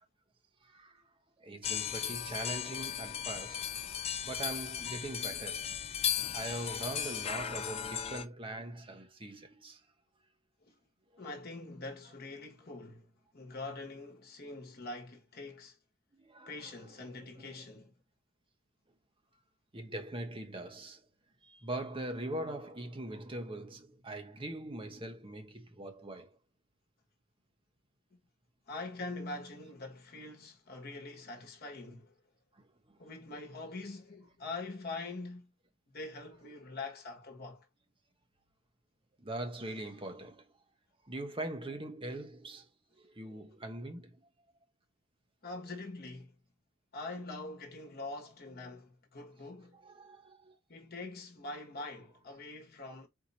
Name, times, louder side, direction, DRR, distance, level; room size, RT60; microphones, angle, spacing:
voice 1, 0.6-1.1 1.4-3.8 4.2-5.7 6.3-9.8 16.2-17.7 19.7-21.0 21.4-26.4 32.9-33.0 39.2-40.5 41.0-42.7 43.0-44.2 49.8-50.6, right 1 dB, 25° right, 1.0 m, -42 dB
sound 1, 1.6-8.2, left 9 dB, 30° left, 0.4 m, -36 dB
voice 2, 11.2-15.8 16.5-17.9 28.1-28.2 28.7-32.1 33.0-35.5 35.9-37.6 45.4-46.3 46.9-49.8 50.7-53.1, left 2 dB, 45° left, 1.4 m, -44 dB
4.6 x 2.8 x 4.1 m
head